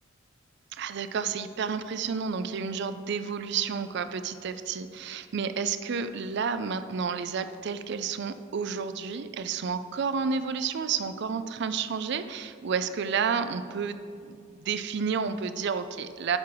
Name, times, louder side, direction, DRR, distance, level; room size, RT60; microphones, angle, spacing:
voice 1, 0.7-16.4, right 6 dB, 60° right, 11 dB, 0.4 m, -31 dB
10.5 x 6.1 x 4.8 m, 2.3 s
head